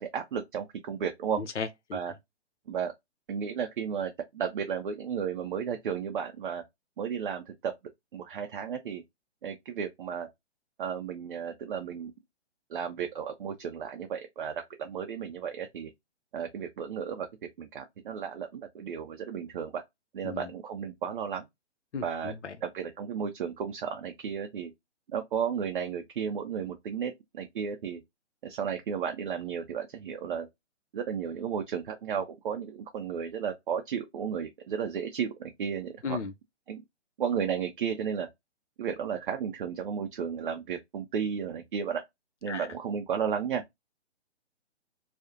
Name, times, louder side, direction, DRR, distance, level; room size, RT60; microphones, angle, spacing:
voice 1, 0.0-1.4 1.9-2.1 2.7-2.9 3.3-6.6 7.0-7.7 8.1-9.0 9.4-10.3 10.8-12.1 12.7-15.9 16.3-17.3 17.6-19.8 20.1-21.5 22.0-22.3 22.6-24.7 25.1-28.0 28.4-30.5 30.9-36.2 36.7-36.8 37.2-38.3 38.8-42.0 42.4-43.6, right 7 dB, 50° right, 0.4 m, -33 dB
voice 2, 1.4-2.0 20.2-20.5 21.9-22.5 36.0-36.3 42.5-42.7, left 5 dB, 90° left, 0.5 m, -35 dB
2.4 x 2.0 x 2.5 m
figure-of-eight pair, 135°, 35 cm